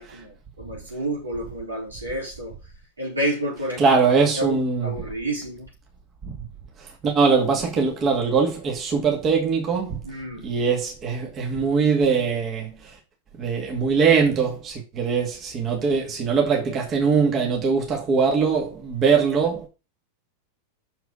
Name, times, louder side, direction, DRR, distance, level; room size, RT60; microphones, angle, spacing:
voice 1, 0.0-2.6 3.0-4.1 4.3-5.7 10.0-10.5, right 1 dB, 80° right, 4.3 m, -30 dB
voice 2, 3.8-4.9 6.2-6.3 6.8-10.0 10.4-13.0 13.4-19.7, right 5 dB, 30° right, 2.3 m, -22 dB
7.0 x 6.1 x 5.0 m
figure-of-eight pair, 90°, 0 cm